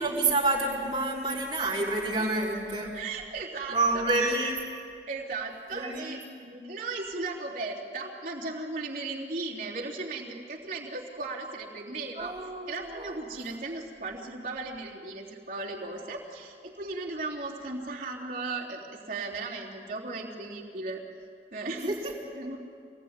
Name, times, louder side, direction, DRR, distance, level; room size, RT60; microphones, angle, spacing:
voice 1, 0.0-3.0 3.7-4.6 5.7-6.6 12.2-13.1 21.7-21.9, right 2 dB, 25° right, -3 dB, 4.3 m, -29 dB
voice 2, 2.2-2.5 2.8-4.3 5.1-6.2 6.6-21.0 21.5-22.0 22.3-22.6, right 3 dB, 45° right, -6 dB, 3.5 m, -36 dB
26.5 x 20.0 x 9.7 m, 2.3 s
head